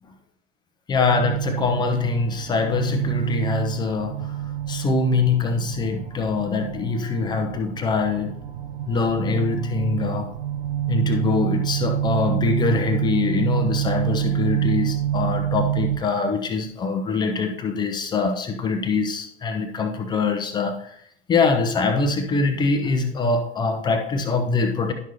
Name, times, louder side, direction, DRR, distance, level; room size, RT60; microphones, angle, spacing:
voice 1, 0.9-4.3 4.7-8.4 8.9-10.3 10.9-20.9 21.3-24.9, left 4 dB, 10° left, 5 dB, 0.7 m, -23 dB
sound 1, 1.1-16.0, right 12 dB, 45° right, 0.9 m, -27 dB
11.0 x 6.0 x 2.8 m, 0.67 s
figure-of-eight pair, 100°, 37 cm